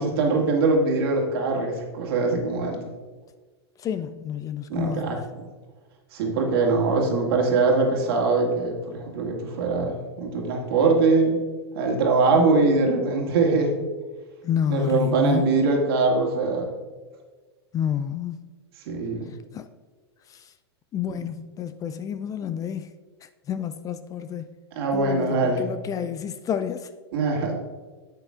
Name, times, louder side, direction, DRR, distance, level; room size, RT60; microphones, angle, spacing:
voice 1, 0.0-2.9 4.7-5.2 6.1-11.4 11.7-13.8 14.7-16.7 18.9-19.3 21.1-21.2 24.7-25.6 27.1-27.5, right 3 dB, 60° right, 2.0 m, -22 dB
voice 2, 3.8-5.1 14.4-15.4 17.7-18.4 19.5-19.7 20.3-20.5 20.9-22.9 23.2-24.5 24.9-26.9, left 9 dB, 25° left, 0.4 m, -29 dB
10.5 x 8.5 x 2.4 m
hypercardioid pair, 105°, 14 cm